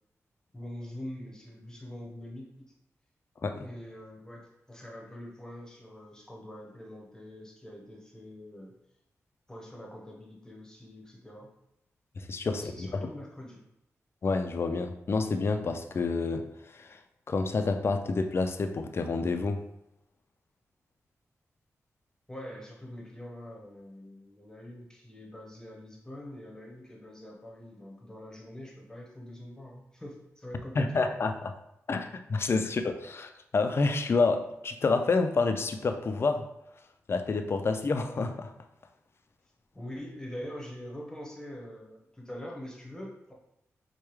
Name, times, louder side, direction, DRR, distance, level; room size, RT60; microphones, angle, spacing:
voice 1, 0.5-2.7 3.6-8.7 9.5-11.5 12.5-13.7 22.3-31.0 39.7-43.3, left 1 dB, 10° left, -1 dB, 0.9 m, -44 dB
voice 2, 12.2-13.1 14.2-17.0 17.3-19.6 30.8-31.5 31.9-36.5 37.1-38.5, left 3 dB, 50° left, 7 dB, 0.4 m, -28 dB
4.7 x 2.2 x 3.1 m, 0.83 s
cardioid pair, 70°, 5 cm